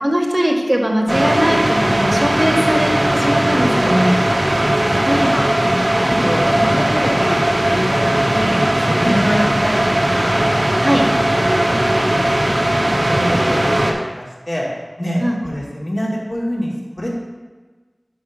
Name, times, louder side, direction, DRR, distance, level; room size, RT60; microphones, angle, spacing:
voice 1, 0.0-4.1 5.1-5.3 9.0-9.2 10.8-11.1 15.2-15.4, equal, 30° right, 0 dB, 1.4 m, -19 dB
sound 1, 1.1-13.9, right 1 dB, 50° right, 1.2 m, -17 dB
voice 2, 3.6-4.4 4.8-5.5 5.9-9.8 10.1-10.4 10.9-11.3 12.4-13.6 13.8-14.7 15.0-17.1, equal, 45° left, -5 dB, 2.4 m, -25 dB
6.4 x 5.4 x 6.1 m, 1.3 s
wide cardioid pair, 40°, 0 cm